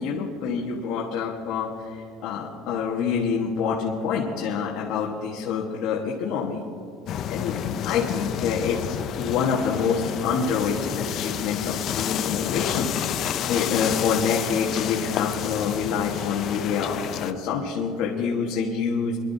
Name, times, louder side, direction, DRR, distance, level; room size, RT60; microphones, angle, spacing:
voice 1, 0.0-6.6 7.3-7.6 7.8-12.9 13.5-19.2, left 6 dB, 50° left, -3 dB, 1.4 m, -26 dB
sound 1, 7.1-17.3, left 9 dB, 35° left, 0.5 m, -30 dB
27.5 x 11.5 x 2.7 m, 2.6 s
cardioid pair, 180°, 0 cm